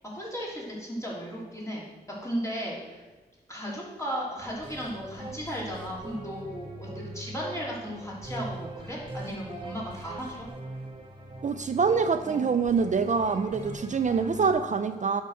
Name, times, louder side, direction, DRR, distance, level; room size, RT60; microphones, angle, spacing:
voice 1, 0.0-3.1 3.5-10.5, equal, 20° left, -6 dB, 3.7 m, -35 dB
sound 1, 4.4-14.5, right 1 dB, 30° right, 1.7 m, -42 dB
voice 2, 11.4-15.2, right 5 dB, 45° right, 9 dB, 0.4 m, -25 dB
8.4 x 6.0 x 6.4 m, 1.2 s
wide cardioid pair, 85°, 17 cm